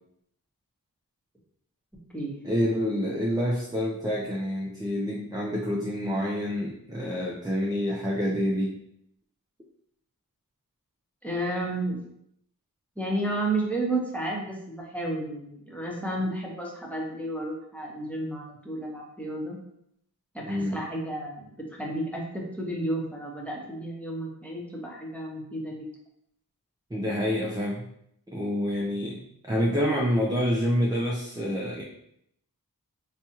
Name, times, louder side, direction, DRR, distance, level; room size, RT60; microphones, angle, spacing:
voice 1, 2.4-8.8 20.4-20.8 26.9-27.9 28.3-31.8, equal, 10° right, -2 dB, 0.5 m, -27 dB
voice 2, 11.2-12.0 13.0-19.6 20.3-21.4 21.7-25.9, right 1 dB, 5° left, -3 dB, 0.9 m, -32 dB
4.2 x 2.3 x 2.9 m, 0.73 s
wide cardioid pair, 50°, 36 cm